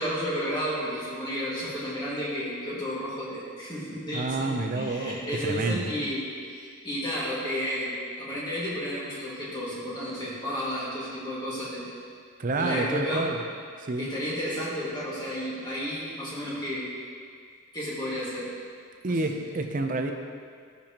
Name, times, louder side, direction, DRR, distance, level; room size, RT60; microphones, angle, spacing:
voice 1, 0.0-11.9 12.6-13.3 14.0-16.9 17.7-18.5 19.0-19.4, equal, 20° left, -7 dB, 2.1 m, -32 dB
voice 2, 4.1-5.9 12.4-13.4 13.8-14.1 19.0-20.1, right 2 dB, 40° right, 5 dB, 0.6 m, -29 dB
11.5 x 6.8 x 3.0 m, 2.1 s
head